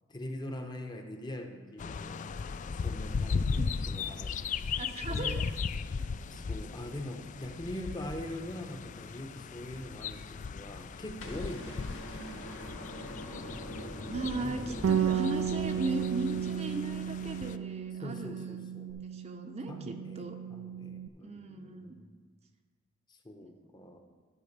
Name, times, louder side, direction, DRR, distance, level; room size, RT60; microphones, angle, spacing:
voice 1, 0.1-2.3 2.7-3.6 3.9-4.4 4.7-4.8 5.1-5.4 6.3-11.9 13.3-13.9 14.4-14.8 18.0-19.0 19.7-22.2 23.1-24.0, left 1 dB, 20° left, 4 dB, 0.9 m, -43 dB
sound 1, 1.8-17.6, left 5 dB, 40° left, 0.3 m, -37 dB
voice 2, 4.8-5.5 12.2-12.7 14.1-18.6 19.0-20.4 21.2-22.0 23.4-23.5 23.8-24.0, right 2 dB, 35° right, 5 dB, 0.6 m, -38 dB
sound 2, 11.2-17.4 18.9-19.0, left 1 dB, 90° left, 2.0 m, -43 dB
Bass guitar, 14.8-21.1, right 8 dB, 70° right, 0.3 m, -34 dB
12.5 x 5.1 x 6.6 m, 1.4 s
head